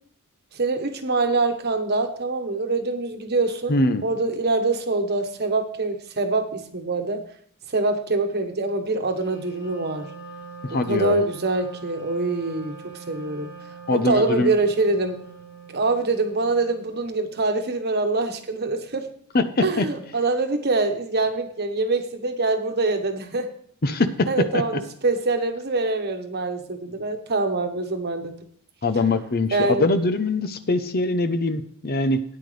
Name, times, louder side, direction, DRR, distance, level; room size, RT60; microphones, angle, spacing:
voice 1, 0.5-7.3 7.7-10.1 10.9-12.8 13.1-13.5 13.9-15.2 15.7-19.1 19.6-23.5 24.3-28.3 29.5-29.9, right 3 dB, 50° right, 6 dB, 1.2 m, -24 dB
voice 2, 3.7-4.0 10.6-11.2 13.9-14.5 19.3-19.8 23.8-24.3 24.5-24.6 28.8-32.2, left 2 dB, 45° left, 10 dB, 0.8 m, -22 dB
Wind instrument woodwind instrument, 9.1-17.0, right 5 dB, 20° left, 3.7 m, -43 dB
13.0 x 9.7 x 3.3 m, 0.62 s
head